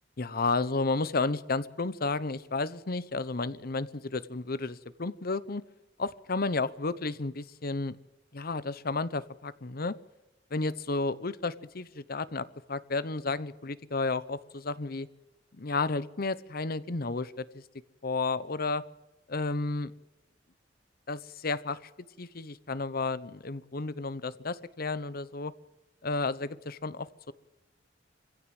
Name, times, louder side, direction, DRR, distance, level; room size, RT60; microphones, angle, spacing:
voice 1, 0.2-5.6 6.0-8.0 8.3-10.0 10.5-15.1 15.5-17.6 18.0-18.8 19.3-19.9 21.1-21.9 22.2-25.5 26.0-27.3, left 3 dB, 55° left, 16 dB, 0.9 m, -32 dB
24.0 x 16.0 x 7.7 m, 0.99 s
head